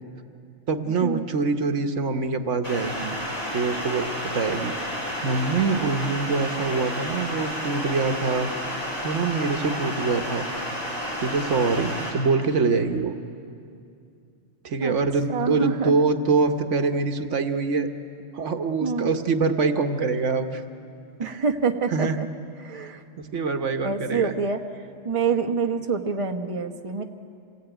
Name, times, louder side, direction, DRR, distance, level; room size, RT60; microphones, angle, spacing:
voice 1, 0.7-3.2 3.5-4.1 4.3-5.0 5.2-8.5 9.0-10.5 11.2-13.1 14.6-17.9 18.3-20.6 21.2-21.4 21.9-22.2 22.7-24.3, right 4 dB, 75° right, 7 dB, 1.4 m, -24 dB
sound 1, 2.6-12.1, equal, 30° left, 5.5 m, -31 dB
voice 2, 15.3-16.0 18.8-19.1 21.2-22.3 22.6-23.0 23.8-24.6 25.0-27.0, right 5 dB, 30° right, 5 dB, 1.0 m, -26 dB
26.5 x 18.0 x 9.1 m, 2.4 s
omnidirectional pair, 1.3 m